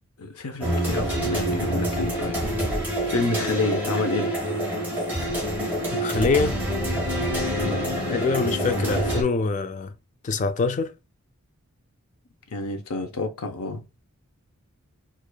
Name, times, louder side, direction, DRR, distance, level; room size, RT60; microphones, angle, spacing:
voice 1, 0.2-2.4 3.1-4.3 7.6-7.9 12.5-13.9, left 2 dB, 80° left, 0.6 m, -29 dB
sound 1, 0.6-9.2, right 1 dB, 10° right, 1.2 m, -26 dB
voice 2, 5.9-6.6 8.1-9.9 10.2-10.9, left 4 dB, 35° left, 0.3 m, -24 dB
4.6 x 2.4 x 2.2 m
head